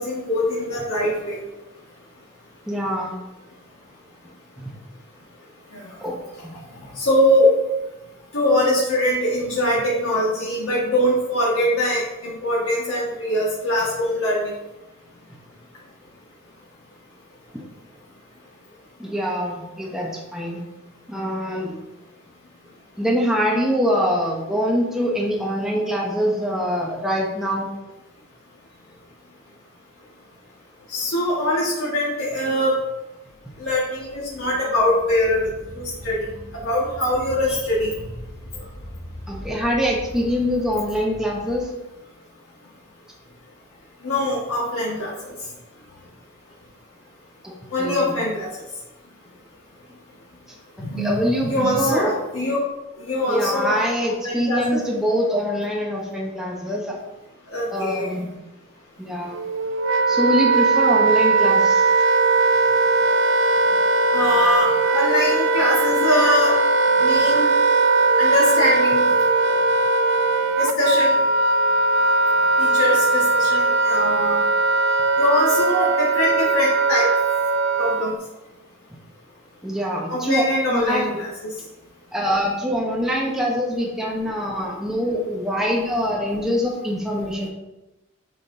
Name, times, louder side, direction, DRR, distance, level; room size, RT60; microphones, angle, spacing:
voice 1, 0.0-1.4 5.7-5.8 7.0-7.5 8.3-14.5 30.9-32.7 33.6-35.4 36.0-36.2 36.5-37.9 44.0-45.1 47.7-48.5 50.8-51.1 51.5-52.6 53.0-53.8 54.1-54.6 57.5-58.1 64.1-66.6 67.0-67.5 68.2-69.1 70.6-71.1 72.6-74.4 75.2-77.1 77.8-78.1 80.1-81.3, left 1 dB, 85° left, -6 dB, 1.6 m, -22 dB
voice 2, 2.7-3.1 4.6-4.7 6.0-6.2 19.0-20.6 21.1-21.8 23.0-27.7 37.5-37.6 39.3-41.7 47.4-48.2 50.5-50.6 51.0-52.1 53.3-57.0 57.7-58.4 59.0-59.4 60.1-61.9 79.6-80.4 80.7-81.1 82.1-87.5, equal, 5° right, -3 dB, 0.9 m, -24 dB
sound 1, 33.3-41.6, equal, 25° left, 1.1 m, -40 dB
Wind instrument woodwind instrument, 59.3-78.1, right 3 dB, 60° right, 0.4 m, -19 dB
8.1 x 5.9 x 2.7 m, 1.0 s
head